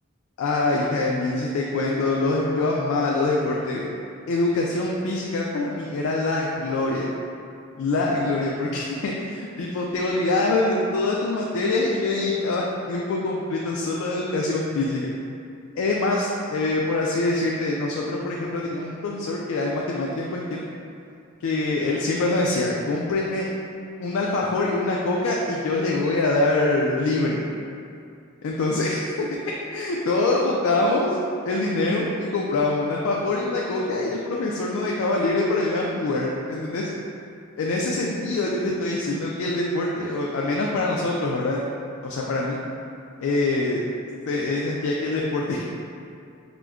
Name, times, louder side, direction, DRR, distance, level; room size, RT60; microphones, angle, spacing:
voice 1, 0.4-3.8 4.3-7.1 7.8-15.1 15.8-20.6 21.4-23.5 24.0-27.4 28.4-29.3 29.7-31.2 31.4-36.9 37.6-41.6 42.0-42.6 43.2-43.8 44.3-45.6, left 2 dB, 80° left, -3 dB, 0.3 m, -24 dB
4.9 x 2.1 x 2.3 m, 2.5 s
head